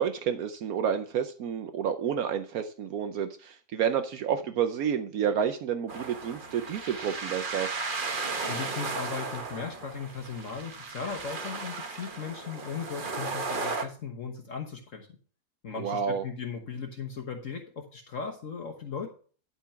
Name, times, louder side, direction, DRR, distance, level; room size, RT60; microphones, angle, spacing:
voice 1, 0.0-7.7 15.8-16.2, right 8 dB, 70° right, 8 dB, 1.1 m, -29 dB
sound 1, 5.9-13.8, right 3 dB, 35° right, 1.1 m, -35 dB
voice 2, 8.4-15.1 15.6-19.1, left 6 dB, 55° left, 3 dB, 1.4 m, -37 dB
11.5 x 4.6 x 5.6 m, 0.42 s
omnidirectional pair, 1.6 m